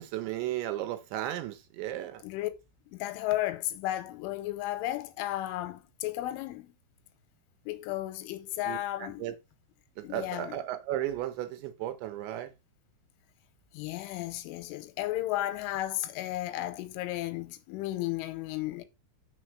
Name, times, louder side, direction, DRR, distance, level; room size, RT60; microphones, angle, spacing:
voice 1, 0.0-2.2 8.7-9.4 10.0-12.5, right 13 dB, 75° right, 2.9 m, -35 dB
voice 2, 2.9-6.7 7.7-9.3 10.0-10.6 13.7-18.8, left 15 dB, 90° left, 3.3 m, -34 dB
6.5 x 4.3 x 6.2 m
omnidirectional pair, 5.6 m